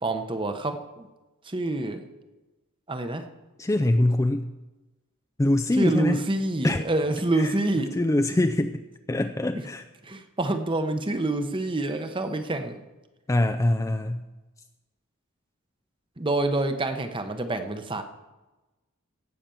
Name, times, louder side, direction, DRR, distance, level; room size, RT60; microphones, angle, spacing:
voice 1, 0.0-1.1 1.4-2.0 2.9-3.3 5.8-8.0 8.4-8.5 10.0-12.8 16.2-18.0, right 2 dB, 20° right, 8 dB, 0.9 m, -27 dB
voice 2, 3.6-4.5 5.4-6.2 6.6-6.8 7.3-8.8 9.1-9.8 13.3-14.2, left 1 dB, 15° left, 6 dB, 0.4 m, -24 dB
16.5 x 5.9 x 6.9 m, 1.1 s
head